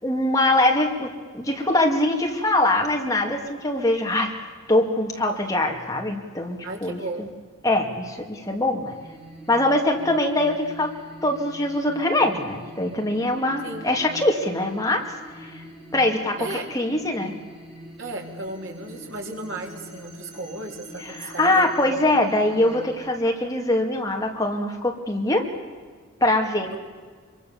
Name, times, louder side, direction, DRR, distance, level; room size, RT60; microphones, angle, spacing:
voice 1, 0.0-4.3 4.7-7.0 7.6-9.0 9.5-10.9 11.2-15.0 15.4-15.6 15.9-17.3 21.0-25.4 26.2-26.8, left 1 dB, 15° left, 1 dB, 2.4 m, -23 dB
voice 2, 6.6-7.3 13.6-13.8 16.4-16.7 18.0-21.7 26.7-26.8, right 2 dB, 75° right, 1 dB, 3.9 m, -34 dB
sound 1, 8.8-23.0, equal, 5° right, 5.8 m, -44 dB
26.0 x 23.5 x 7.2 m, 1.5 s
head